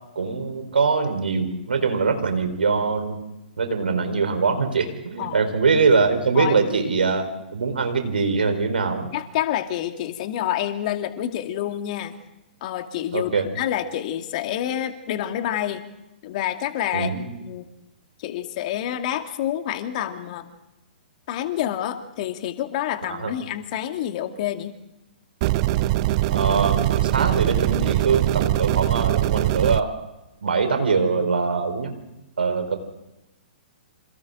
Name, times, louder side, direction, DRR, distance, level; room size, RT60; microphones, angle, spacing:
voice 1, 0.2-3.2 3.6-7.3 7.5-9.1 13.1-13.5 16.9-17.2 23.1-23.3 26.3-29.9 30.4-31.9 32.4-32.8, right 4 dB, 75° right, 6 dB, 4.4 m, -22 dB
voice 2, 9.1-12.1 12.6-15.8 16.2-17.1 17.4-17.7 18.2-20.5 21.3-24.7, left 11 dB, 45° left, 7 dB, 2.1 m, -28 dB
sound 1, 25.4-29.8, right 16 dB, 40° right, 0.6 m, -22 dB
28.0 x 27.5 x 3.9 m, 0.93 s
figure-of-eight pair, 120°, 5 cm